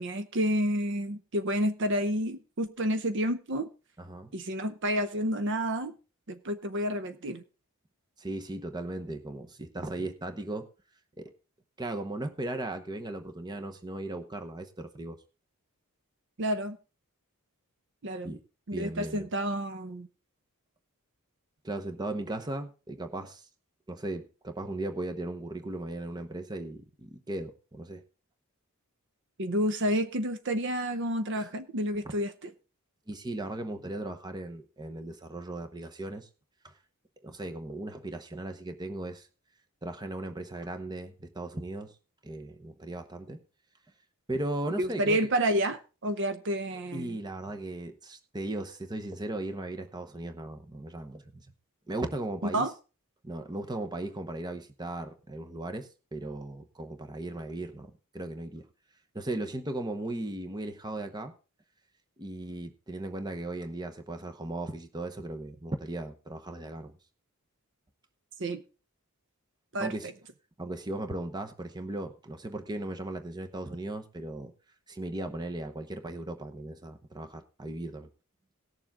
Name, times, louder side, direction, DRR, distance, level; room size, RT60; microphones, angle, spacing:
voice 1, 0.0-3.7 4.3-5.9 6.3-7.4 16.4-16.8 18.0-18.3 18.7-20.1 29.4-32.5 44.8-47.2 52.5-52.7 68.4-68.6 69.7-69.9, equal, 55° right, 0.7 m, -29 dB
voice 2, 4.0-4.3 8.2-10.7 11.2-11.3 11.8-15.2 18.2-18.4 18.7-19.3 21.6-23.4 23.9-28.0 31.4-31.5 33.1-36.3 36.6-36.7 37.2-39.3 39.8-41.9 42.2-43.4 44.3-45.2 46.9-51.5 51.9-52.7 53.2-58.7 59.1-61.3 62.2-67.0 69.8-70.1 70.6-74.5 74.9-78.1, right 1 dB, 20° right, 0.9 m, -37 dB
18.0 x 7.0 x 3.7 m
head